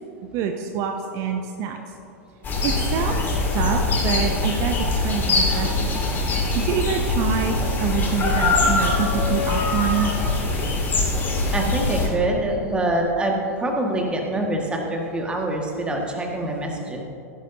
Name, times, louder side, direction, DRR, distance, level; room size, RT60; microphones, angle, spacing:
voice 1, 0.3-1.8 2.6-4.8 5.0-6.0 6.5-10.1, right 7 dB, 40° right, 4 dB, 0.7 m, -26 dB
sound 1, 2.4-12.1, left 3 dB, 25° left, 2.4 m, -22 dB
voice 2, 11.5-17.0, right 1 dB, 10° right, 0 dB, 1.7 m, -25 dB
15.5 x 11.0 x 2.7 m, 2.8 s
figure-of-eight pair, 95°, 9 cm